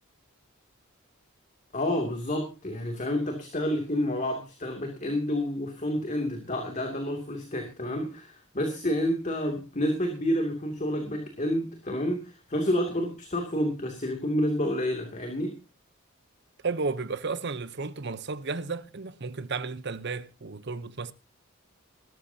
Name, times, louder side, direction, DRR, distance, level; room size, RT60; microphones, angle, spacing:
voice 1, 1.7-15.6, left 1 dB, 35° left, 2.7 m, -29 dB
voice 2, 16.6-21.1, right 4 dB, 55° right, 0.9 m, -33 dB
19.5 x 13.5 x 2.8 m
head